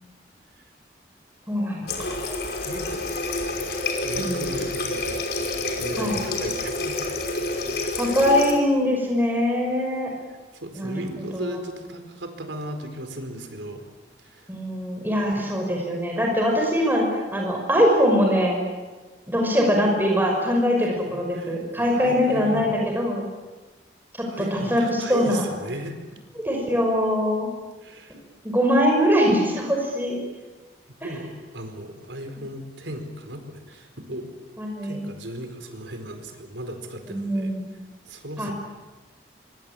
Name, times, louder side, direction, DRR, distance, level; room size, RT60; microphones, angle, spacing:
voice 1, 1.5-1.9 4.2-4.4 6.0-6.2 8.0-10.1 10.7-11.6 14.5-18.6 19.3-23.3 24.2-25.4 26.4-27.5 28.4-30.2 31.0-31.1 34.6-35.1 37.1-37.7 38.4-38.5, equal, 10° right, 0 dB, 5.7 m, -22 dB
Water tap faucet, 1.9-8.6, left 2 dB, 60° left, 5.2 m, -28 dB
voice 2, 2.6-3.1 4.0-7.0 8.1-8.2 10.6-13.8 14.2-14.4 15.4-15.5 21.1-22.8 24.3-26.0 27.8-28.2 30.9-34.3 34.8-37.5 38.1-38.5, right 1 dB, 90° right, 7 dB, 4.6 m, -36 dB
25.0 x 25.0 x 8.8 m, 1.3 s
head